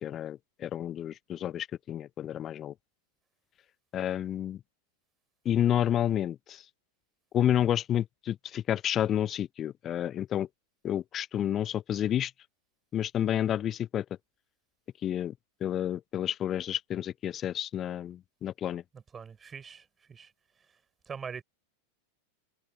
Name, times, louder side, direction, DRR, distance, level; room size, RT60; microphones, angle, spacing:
voice 1, 0.0-2.7 3.9-4.6 5.4-6.6 7.3-10.5 10.8-12.3 12.9-14.1 15.0-15.3 15.6-18.8, left 10 dB, 30° left, 0.6 m, -30 dB
voice 2, 19.1-20.3 21.1-21.4, right 6 dB, 20° right, 4.5 m, -42 dB
figure-of-eight pair, 90°, 0 cm